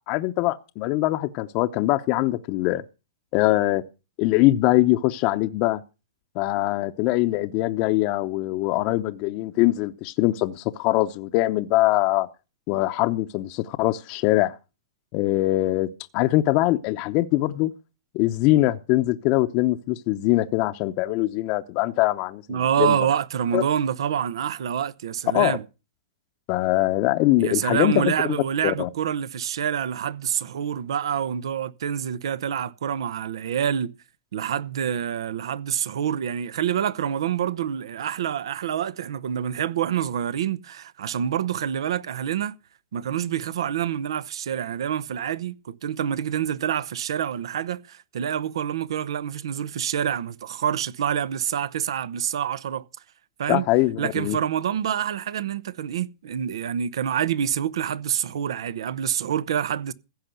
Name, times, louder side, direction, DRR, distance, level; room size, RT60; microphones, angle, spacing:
voice 1, 0.1-2.8 3.3-3.8 4.2-5.8 6.3-12.3 12.7-14.5 15.1-17.7 18.1-23.0 23.5-23.6 25.3-25.5 26.5-28.0 28.6-28.9 53.5-54.4, left 17 dB, 40° left, 0.8 m, -22 dB
voice 2, 22.5-25.6 27.4-33.9 34.3-42.5 42.9-52.8 53.4-53.6 54.0-59.9, right 9 dB, 75° right, 0.8 m, -27 dB
15.5 x 5.6 x 9.2 m
hypercardioid pair, 135°, 3 cm